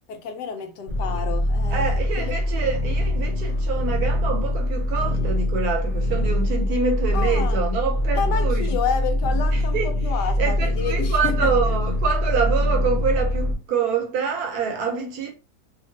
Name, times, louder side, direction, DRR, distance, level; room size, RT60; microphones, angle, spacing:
voice 1, 0.1-2.4 7.1-7.6 8.1-11.5, left 7 dB, 75° left, 1.2 m, -30 dB
sound 1, 0.9-13.5, left 1 dB, 50° left, 0.6 m, -23 dB
voice 2, 1.7-8.6 9.7-9.9 10.4-15.3, right 5 dB, 70° right, 1.1 m, -26 dB
2.8 x 2.5 x 2.7 m
omnidirectional pair, 1.9 m